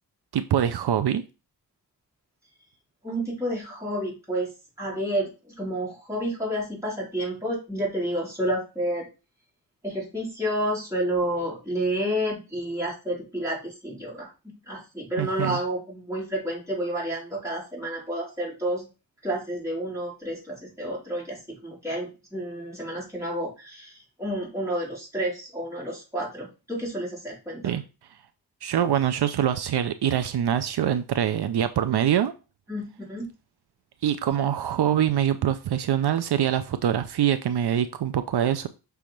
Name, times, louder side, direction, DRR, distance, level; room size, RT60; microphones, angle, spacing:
voice 1, 0.3-1.2 15.2-15.6 27.6-27.8 28.6-32.3 34.0-38.7, right 10 dB, 80° right, 10 dB, 0.6 m, -24 dB
voice 2, 3.0-4.5 4.8-9.1 9.8-18.9 19.2-27.8 32.7-33.3, right 1 dB, 10° right, -6 dB, 4.2 m, -30 dB
6.2 x 3.5 x 5.8 m, 0.31 s
wide cardioid pair, 120°, 39 cm